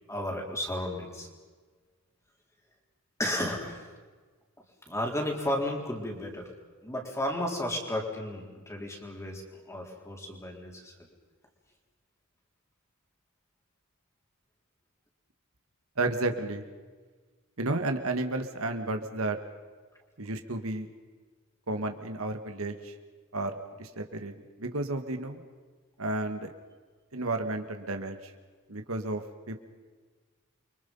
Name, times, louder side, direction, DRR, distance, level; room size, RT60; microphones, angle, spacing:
voice 1, 0.1-1.3 3.2-3.9 4.9-6.5 6.8-9.4 9.7-10.9, left 1 dB, 15° left, 0 dB, 4.1 m, -33 dB
voice 2, 16.0-16.6 17.6-19.4 20.2-20.9 21.7-22.9 23.3-25.4 26.0-26.5 27.1-28.3 28.7-29.6, right 2 dB, 70° right, 5 dB, 1.9 m, -32 dB
29.5 x 24.5 x 5.6 m, 1.4 s
head